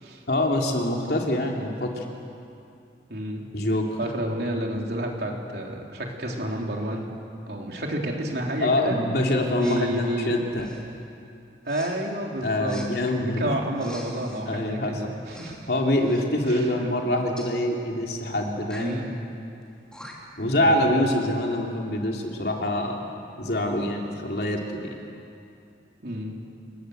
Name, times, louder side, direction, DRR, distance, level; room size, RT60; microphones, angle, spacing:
voice 1, 0.3-2.0 3.5-3.9 8.6-10.7 12.4-13.5 14.4-15.0 15.7-19.0 20.4-23.0 23.4-24.9, left 1 dB, 65° left, 0 dB, 3.3 m, -25 dB
voice 2, 3.1-3.4 4.0-7.1 7.5-9.0 9.5-10.4 11.7-12.8 13.1-15.6 16.4-16.9 18.8-19.1 20.6-21.0 26.0-26.4, right 1 dB, 65° right, 0 dB, 3.6 m, -30 dB
Respiratory sounds, 9.6-9.9 10.5-10.9 11.7-11.9 12.7-12.9 13.7-14.4 15.2-15.6 15.9-16.2 17.4-17.5 18.6-19.0 19.6-19.7 19.9-20.4, equal, 5° left, 3.0 m, -45 dB
28.5 x 19.5 x 8.0 m, 2.6 s
head